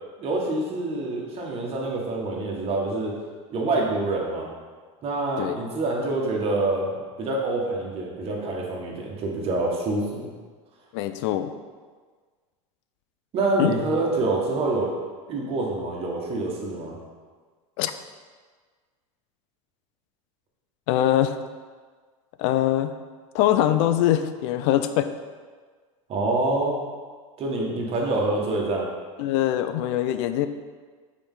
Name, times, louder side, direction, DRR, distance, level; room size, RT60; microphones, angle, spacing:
voice 1, 0.2-3.2 3.5-4.5 5.0-10.3 13.3-15.0 15.3-17.0 26.1-26.8 27.4-28.9, right 2 dB, 35° right, -2 dB, 1.6 m, -26 dB
voice 2, 10.9-11.5 13.6-13.7 17.8-17.9 20.9-21.4 22.4-22.9 23.3-25.1 29.2-30.5, left 12 dB, 60° left, 11 dB, 0.5 m, -22 dB
7.0 x 4.7 x 3.8 m, 1.5 s
supercardioid pair, 125°, 17 cm